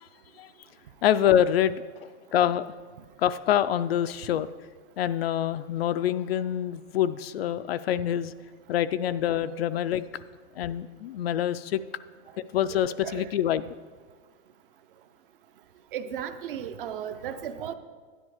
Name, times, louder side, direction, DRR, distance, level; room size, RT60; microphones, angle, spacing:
voice 1, 1.0-2.6 3.2-4.5 5.0-8.3 8.7-10.0 10.6-11.8 12.5-13.6, left 10 dB, 55° left, 13 dB, 0.4 m, -26 dB
voice 2, 12.7-13.3 15.9-17.7, right 9 dB, 50° right, 10 dB, 0.7 m, -35 dB
11.0 x 10.0 x 4.8 m, 1.5 s
supercardioid pair, 175°, 36 cm